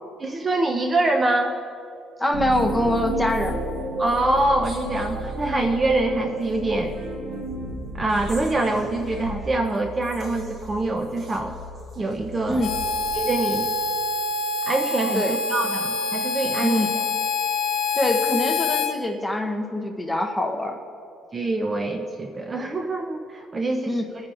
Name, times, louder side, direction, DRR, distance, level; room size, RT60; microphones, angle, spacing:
voice 1, 0.2-1.6 4.0-7.0 7.9-11.6 12.0-12.7 13.1-13.7 14.7-15.2 15.5-17.0 21.3-24.0, right 2 dB, 25° right, 4 dB, 0.6 m, -25 dB
voice 2, 2.2-3.6 12.5-12.8 15.1-15.4 16.6-16.9 17.9-20.8 23.9-24.1, left 1 dB, 5° left, 1 dB, 0.9 m, -24 dB
sound 1, 2.3-13.9, equal, 40° right, 1.7 m, -33 dB
Harmonica, 12.6-18.9, left 4 dB, 55° left, 0.8 m, -26 dB
23.0 x 9.5 x 2.5 m, 2.6 s
cardioid pair, 145°, 0 cm